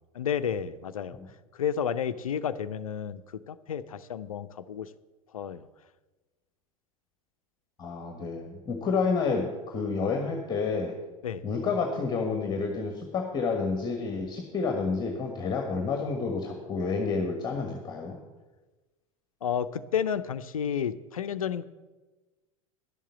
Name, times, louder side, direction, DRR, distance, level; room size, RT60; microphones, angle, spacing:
voice 1, 0.1-1.2 1.5-4.9 5.3-5.7 11.2-11.4 19.4-21.6, left 8 dB, 75° left, 14 dB, 0.5 m, -31 dB
voice 2, 7.8-10.9 11.4-18.2, left 4 dB, 25° left, 3 dB, 1.4 m, -29 dB
11.0 x 7.3 x 7.1 m, 1.2 s
figure-of-eight pair, 85°, 18 cm